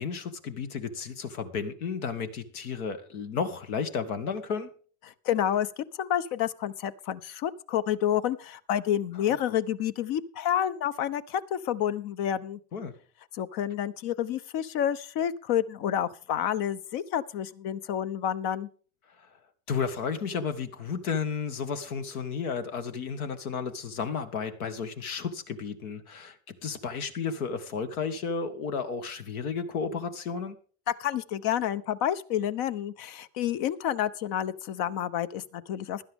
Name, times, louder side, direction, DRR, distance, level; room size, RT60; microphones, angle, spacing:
voice 1, 0.0-4.7 12.7-12.9 19.2-19.3 19.7-26.4 26.6-30.6, left 5 dB, 80° left, 8 dB, 1.8 m, -33 dB
voice 2, 5.2-12.6 13.3-18.7 31.0-36.0, left 10 dB, 60° left, 14 dB, 1.1 m, -29 dB
16.5 x 12.0 x 3.6 m, 0.42 s
hypercardioid pair, 80°, 42 cm